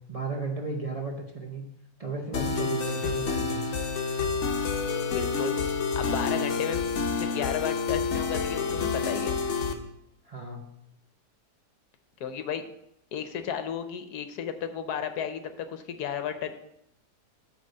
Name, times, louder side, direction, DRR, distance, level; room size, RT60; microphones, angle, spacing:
voice 1, 0.1-1.6 2.0-3.6 10.2-10.6, right 3 dB, 45° right, 1 dB, 0.4 m, -34 dB
sound 1, 2.3-9.7, left 5 dB, 50° left, 1.0 m, -28 dB
voice 2, 5.1-5.5 5.9-6.9 7.2-9.4 12.2-12.6 13.1-16.6, left 8 dB, 75° left, 9 dB, 1.2 m, -33 dB
8.0 x 3.5 x 6.6 m, 0.80 s
omnidirectional pair, 1.8 m